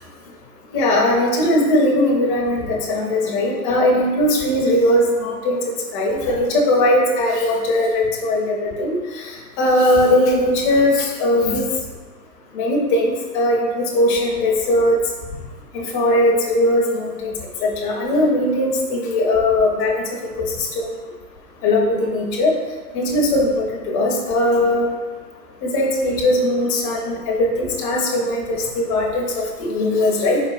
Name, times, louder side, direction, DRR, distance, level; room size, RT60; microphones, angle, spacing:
voice 1, 0.7-5.6 5.9-9.0 9.6-11.6 12.6-15.0 15.7-17.3 17.6-20.0 20.6-20.9 21.6-22.5 22.9-24.8 25.6-30.4, left 1 dB, 25° left, -2 dB, 0.6 m, -19 dB
4.6 x 4.1 x 2.4 m, 1.4 s
hypercardioid pair, 130°, 48 cm